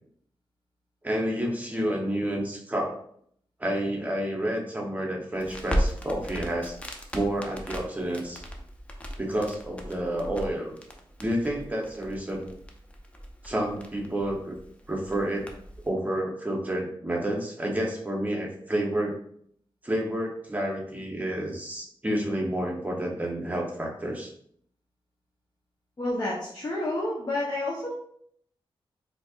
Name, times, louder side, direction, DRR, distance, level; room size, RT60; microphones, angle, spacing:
voice 1, 1.0-3.0 3.6-6.7 7.1-8.4 9.2-10.8 11.2-12.5 13.4-14.6 14.9-15.5 15.8-19.2 19.8-24.3, right 1 dB, 15° right, -1 dB, 0.8 m, -29 dB
Crackle, 5.3-15.9, equal, 15° left, 0.5 m, -36 dB
voice 2, 26.0-27.9, left 1 dB, 40° left, -5 dB, 0.8 m, -29 dB
4.0 x 2.6 x 2.4 m, 0.65 s
wide cardioid pair, 95°, 10 cm